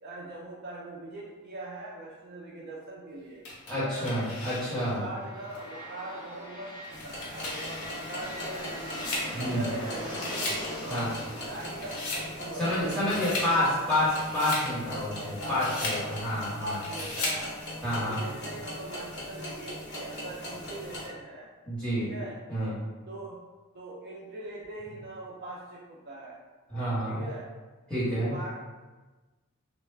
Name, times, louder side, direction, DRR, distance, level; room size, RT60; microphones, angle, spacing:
voice 1, 0.0-3.5 3.7-4.2 4.8-6.7 7.0-13.7 15.4-16.2 16.6-17.5 18.0-21.5 22.0-22.4 23.1-23.4 23.7-26.4 27.1-27.5 28.3-28.5, right 1 dB, 45° right, -5 dB, 0.4 m, -41 dB
sound 1, 3.4-5.0 5.5-5.6 6.8-9.8 10.1-10.7 11.0-12.3 12.7-13.5 13.9-14.7 15.2-16.0 16.7-17.4, left 2 dB, 80° left, 0.6 m, -36 dB
voice 2, 3.7-5.0 9.3-9.6 10.9-11.1 12.6-16.7 17.8-18.2 21.7-22.1 22.5-22.7 26.7-27.2 27.9-28.3, left 1 dB, 5° left, -12 dB, 1.2 m, -29 dB
sound 2, 5.1-14.8, equal, 20° left, 0.4 m, -42 dB
sound 3, 6.9-21.1, left 1 dB, 50° left, 0.8 m, -40 dB
2.3 x 2.1 x 3.2 m, 1.2 s
head